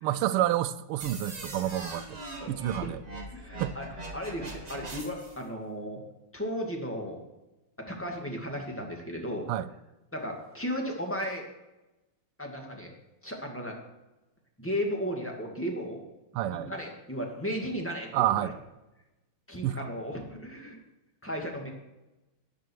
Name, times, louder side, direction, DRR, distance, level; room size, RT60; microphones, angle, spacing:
voice 1, 0.0-2.2 2.5-3.0 3.6-3.8 9.5-9.7 16.3-16.7 18.1-18.5 19.6-19.8, right 13 dB, 85° right, 1.5 m, -28 dB
sound 1, 1.0-5.4, right 2 dB, 20° right, 1.4 m, -41 dB
voice 2, 2.4-2.9 3.3-3.9 4.1-6.0 6.3-7.2 7.8-9.5 10.1-11.4 12.4-12.9 13.2-13.8 14.6-16.0 16.5-18.5 19.5-20.8 21.2-21.7, equal, 5° left, 2.0 m, -35 dB
13.0 x 10.0 x 4.6 m
omnidirectional pair, 2.4 m